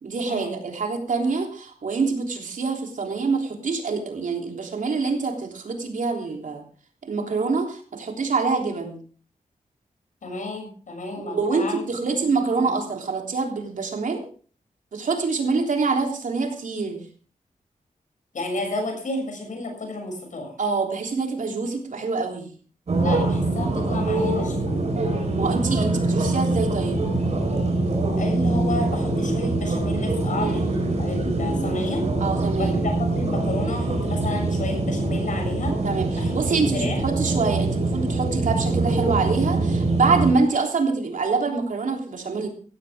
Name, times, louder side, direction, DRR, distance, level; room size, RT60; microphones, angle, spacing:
voice 1, 0.0-6.6 7.0-9.0 11.2-14.2 14.9-17.0 20.6-22.5 25.3-27.0 30.4-30.6 32.2-32.8 35.8-42.5, right 4 dB, 70° right, 3 dB, 3.4 m, -25 dB
voice 2, 10.2-11.8 12.1-12.5 18.3-20.5 23.0-24.8 28.2-32.1 32.5-35.7 36.2-37.0, left 2 dB, 65° left, 2 dB, 7.1 m, -31 dB
sound 1, 22.9-40.3, right 2 dB, 50° right, 4.6 m, -24 dB
16.0 x 16.0 x 3.6 m, 0.41 s
wide cardioid pair, 170°, 14 cm